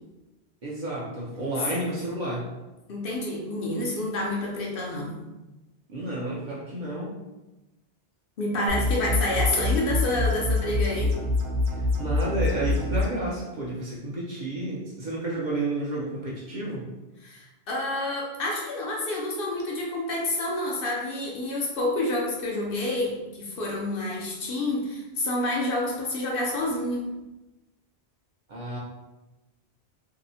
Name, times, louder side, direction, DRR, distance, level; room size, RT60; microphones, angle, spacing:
voice 1, 0.6-2.5 5.9-7.1 11.7-16.8 28.5-28.8, right 1 dB, 55° right, -5 dB, 0.6 m, -31 dB
voice 2, 2.9-5.2 8.4-11.1 17.2-27.1, left 2 dB, 65° left, -2 dB, 0.7 m, -28 dB
sound 1, 8.7-13.1, left 2 dB, 80° right, 0.9 m, -25 dB
2.7 x 2.0 x 2.6 m, 1.0 s
omnidirectional pair, 1.1 m